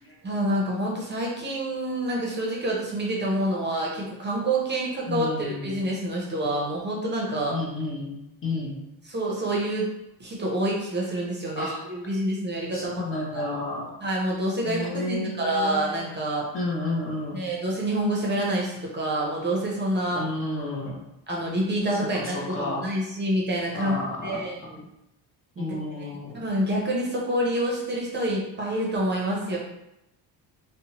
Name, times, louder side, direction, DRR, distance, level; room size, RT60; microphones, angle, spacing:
voice 1, 0.2-7.6 9.1-9.9 10.2-13.0 13.3-13.4 14.0-16.5 17.3-20.2 21.3-23.9 24.2-24.8 25.6-25.7 26.3-29.6, right 1 dB, 25° right, -3 dB, 0.7 m, -27 dB
voice 2, 5.1-5.8 7.5-8.8 11.5-11.8 12.7-13.8 14.6-16.0 16.5-17.4 20.1-21.0 22.0-22.9 23.7-24.4 25.6-26.4, left 2 dB, 30° left, -4 dB, 0.7 m, -31 dB
2.8 x 2.1 x 2.9 m, 0.88 s
cardioid pair, 120°, 40 cm